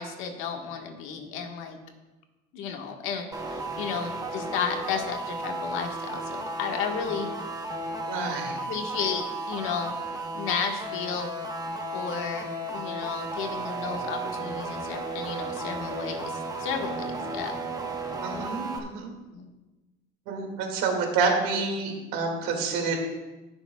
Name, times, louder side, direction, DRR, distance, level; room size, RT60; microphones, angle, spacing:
voice 1, 0.0-1.8 2.5-7.3 8.7-10.0 10.3-11.3 11.9-17.5 19.3-19.5, left 6 dB, 80° left, 3 dB, 1.6 m, -33 dB
sound 1, 3.3-18.8, right 2 dB, 20° right, 1.1 m, -34 dB
voice 2, 8.1-8.6 18.2-19.1 20.3-23.0, right 4 dB, 90° right, 2 dB, 2.2 m, -28 dB
20.0 x 7.0 x 2.3 m, 1.1 s
cardioid pair, 110°, 21 cm